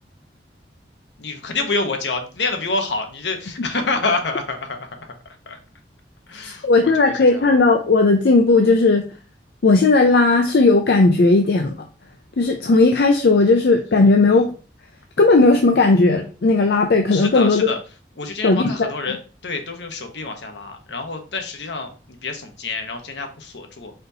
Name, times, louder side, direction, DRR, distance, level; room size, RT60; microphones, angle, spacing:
voice 1, 1.2-5.1 5.5-5.6 6.3-6.7 7.0-7.5 17.1-17.8 18.2-19.2 19.4-23.9, left 3 dB, 80° left, 0.9 m, -27 dB
voice 2, 6.6-9.1 9.6-11.7 12.4-14.5 15.2-17.7 18.4-18.9, left 3 dB, 65° left, 0.5 m, -15 dB
4.3 x 2.7 x 4.0 m
head